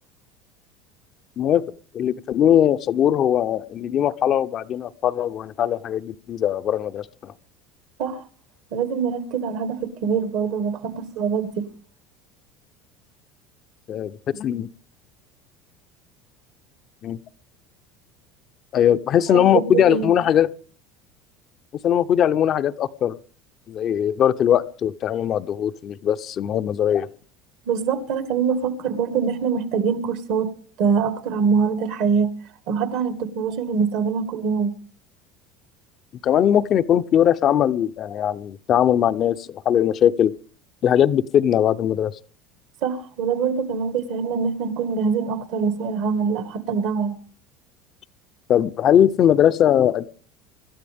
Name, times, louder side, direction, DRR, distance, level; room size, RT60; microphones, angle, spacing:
voice 1, 1.9-7.3 13.9-14.7 17.0-17.2 18.7-20.5 21.8-23.2 23.7-27.1 36.2-40.3 40.8-42.1 48.5-50.1, left 10 dB, 45° left, 0.7 m, -20 dB
voice 2, 8.7-11.7 19.3-20.1 27.6-30.5 30.8-32.3 32.7-34.8 42.8-47.2, right 6 dB, 65° right, 1.8 m, -24 dB
25.5 x 12.5 x 3.5 m
supercardioid pair, 105°, 0 cm